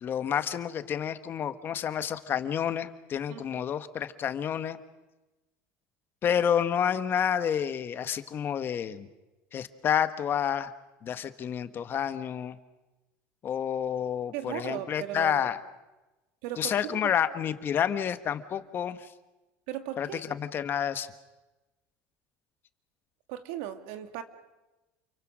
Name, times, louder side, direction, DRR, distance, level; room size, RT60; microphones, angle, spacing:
voice 1, 0.0-4.8 6.2-9.1 9.5-10.7 11.0-12.6 13.4-15.6 16.6-19.1 20.0-21.1, left 9 dB, 35° left, 11 dB, 1.4 m, -29 dB
voice 2, 3.3-3.6 14.3-15.5 16.4-17.1 19.7-20.2 23.3-24.2, right 12 dB, 80° right, 8 dB, 2.2 m, -37 dB
29.0 x 23.0 x 6.3 m, 1.1 s
supercardioid pair, 130°, 6 cm